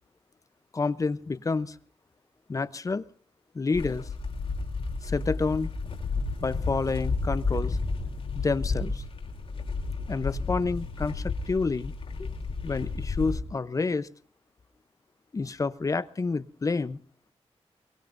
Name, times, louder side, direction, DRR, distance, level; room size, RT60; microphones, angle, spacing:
voice 1, 0.7-1.8 2.5-3.0 3.5-4.1 5.0-5.7 6.4-7.8 8.3-9.0 10.1-11.9 12.2-12.3 12.6-14.1 15.3-17.0, left 4 dB, 30° left, 0.7 m, -29 dB
sound 1, 3.7-13.4, left 3 dB, 60° left, 3.3 m, -32 dB
23.0 x 23.0 x 2.6 m
wide cardioid pair, 150°, 11 cm